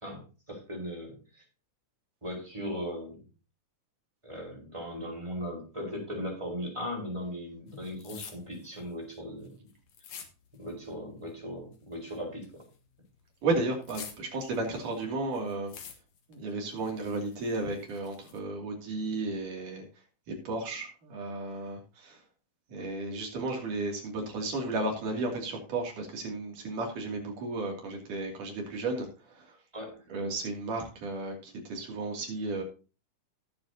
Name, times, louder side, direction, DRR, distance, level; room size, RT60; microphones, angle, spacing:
voice 1, 0.0-1.4 2.2-3.3 4.2-9.5 10.6-12.6 29.7-30.0, equal, 10° right, -1 dB, 4.8 m, -38 dB
sound 1, 7.7-10.9 11.2-12.9 13.2-15.1 15.3-16.4 16.7-18.4, left 7 dB, 60° left, 2.7 m, -48 dB
voice 2, 13.4-15.7 16.3-19.8 20.3-22.2 22.7-29.6 30.1-32.6, right 2 dB, 80° right, 1 dB, 4.3 m, -34 dB
18.0 x 7.5 x 2.9 m, 0.33 s
omnidirectional pair, 3.6 m